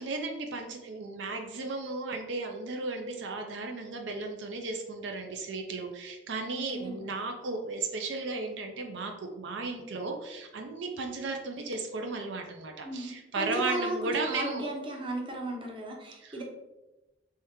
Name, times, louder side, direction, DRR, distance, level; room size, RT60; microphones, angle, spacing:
voice 1, 0.0-14.6 16.2-16.4, right 3 dB, 75° right, 4 dB, 0.5 m, -35 dB
voice 2, 6.5-7.0 12.8-16.4, right 1 dB, 30° right, 0 dB, 0.7 m, -35 dB
3.5 x 3.2 x 3.0 m, 1.0 s
head